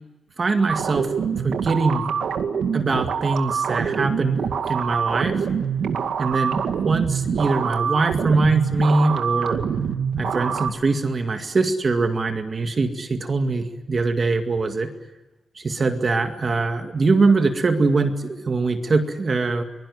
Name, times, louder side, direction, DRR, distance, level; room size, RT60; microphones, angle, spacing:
voice 1, 0.4-1.1 1.4-2.2 2.7-5.4 6.2-9.6 10.2-14.9 15.6-19.6, right 3 dB, 35° right, 6 dB, 2.1 m, -22 dB
sound 1, 0.7-10.7, right 7 dB, 75° right, 2.0 m, -25 dB
24.0 x 22.0 x 9.8 m, 1.1 s
wide cardioid pair, 135°, 0 cm